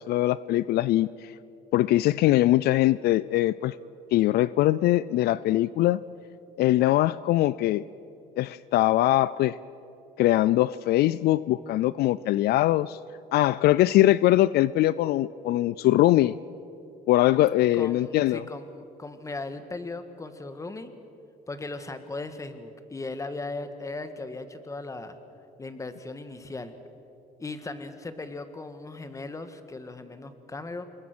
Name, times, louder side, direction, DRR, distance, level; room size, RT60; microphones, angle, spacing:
voice 1, 0.0-1.3 1.7-3.7 4.1-6.0 6.6-7.8 8.4-9.6 10.2-13.0 13.3-16.3 17.1-18.4, left 15 dB, 70° left, 18 dB, 0.4 m, -22 dB
voice 2, 17.7-20.9 21.5-25.2 25.6-26.7 27.4-30.8, left 3 dB, 20° left, 9 dB, 1.7 m, -37 dB
27.0 x 21.5 x 6.2 m, 2.8 s
cardioid pair, 110°, 17 cm